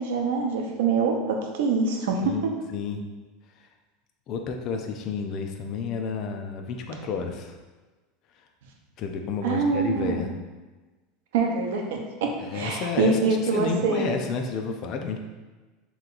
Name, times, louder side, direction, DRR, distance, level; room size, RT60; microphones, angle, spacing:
voice 1, 0.0-2.4 9.4-10.3 11.3-14.1, right 4 dB, 85° right, 2 dB, 0.7 m, -25 dB
voice 2, 2.2-3.0 4.3-7.5 9.0-10.3 12.4-15.2, left 5 dB, 35° left, 4 dB, 0.4 m, -31 dB
3.3 x 3.0 x 3.8 m, 1.2 s
supercardioid pair, 175°, 0 cm